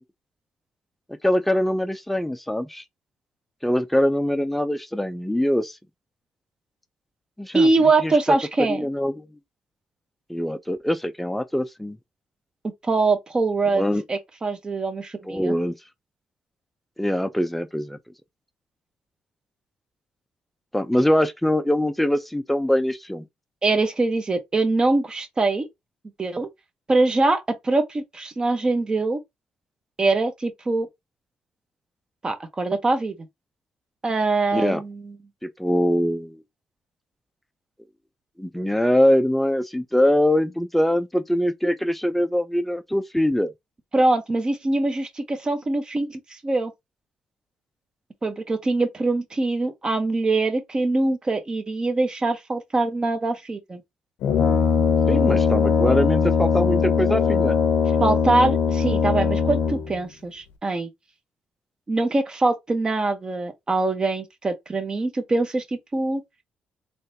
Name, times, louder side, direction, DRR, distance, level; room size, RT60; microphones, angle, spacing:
voice 1, 1.2-2.8 3.6-5.8 7.4-7.7 8.0-8.4 8.7-9.3 10.3-12.0 13.7-14.0 15.2-15.8 17.0-18.0 20.7-23.2 34.5-34.8 35.4-36.4 38.4-43.5 55.1-57.6, left 1 dB, 5° left, 0.5 m, -23 dB
voice 2, 7.5-8.9 12.8-13.8 14.1-15.5 23.6-25.7 26.2-26.5 26.9-29.2 30.0-30.9 32.2-33.1 34.0-35.2 43.9-46.7 48.2-53.8 58.0-60.9 61.9-65.6 65.9-66.2, right 2 dB, 25° right, 1.0 m, -23 dB
Brass instrument, 54.2-60.0, left 6 dB, 90° left, 0.7 m, -20 dB
3.7 x 3.2 x 2.8 m
cardioid pair, 120°, 3 cm